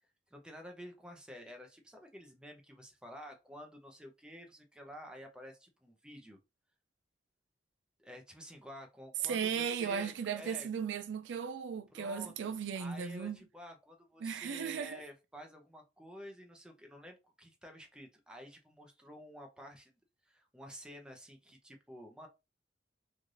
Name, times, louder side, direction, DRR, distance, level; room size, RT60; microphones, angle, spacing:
voice 1, 0.3-6.4 8.0-10.7 11.9-19.9 20.2-22.3, equal, 5° right, 0.6 m, -51 dB
voice 2, 9.2-13.4 14.2-15.0, right 7 dB, 80° right, 0.3 m, -36 dB
3.2 x 2.5 x 2.6 m
head